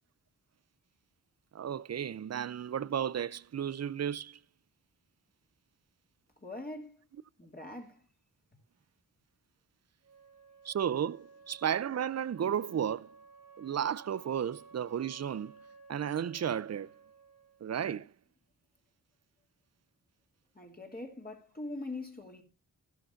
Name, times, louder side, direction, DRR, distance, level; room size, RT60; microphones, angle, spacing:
voice 1, 1.5-4.4 10.6-13.1 13.6-15.6 15.9-16.9 17.6-18.1, right 9 dB, 45° right, 0.5 m, -33 dB
voice 2, 6.4-7.0 7.4-8.0 20.5-22.4, left 2 dB, 25° left, 2.9 m, -42 dB
Wind instrument woodwind instrument, 10.0-17.7, right 4 dB, 75° right, 3.1 m, -56 dB
12.5 x 11.5 x 2.6 m
cardioid pair, 50°, 36 cm